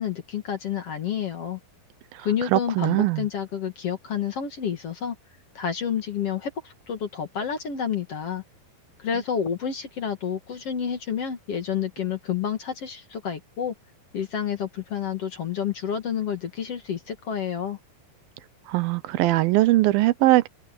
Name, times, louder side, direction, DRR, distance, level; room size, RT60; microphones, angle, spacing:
voice 1, 0.0-1.6 2.2-5.2 5.5-8.4 9.0-13.7 14.1-17.8, left 8 dB, 50° left, 2.3 m, -29 dB
voice 2, 2.2-3.3 18.7-20.5, right 18 dB, 80° right, 2.5 m, -21 dB
open air
omnidirectional pair, 4.4 m